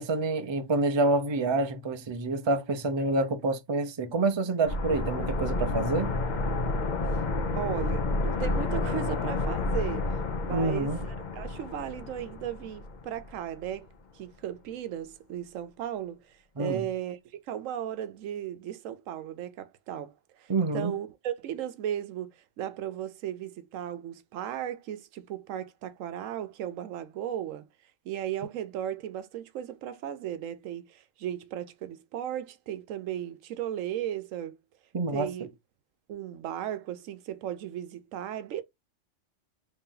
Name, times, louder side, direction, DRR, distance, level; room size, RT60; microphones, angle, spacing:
voice 1, 0.0-6.1 10.5-11.0 16.6-16.8 20.5-20.9 34.9-35.3, right 2 dB, 35° right, 0.4 m, -27 dB
sound 1, 4.7-13.4 13.6-13.7, left 3 dB, 45° left, 0.6 m, -30 dB
voice 2, 7.5-13.9 14.1-34.6 35.1-35.5 36.1-38.6, right 11 dB, 90° right, 1.0 m, -36 dB
3.2 x 2.8 x 3.7 m
omnidirectional pair, 1.3 m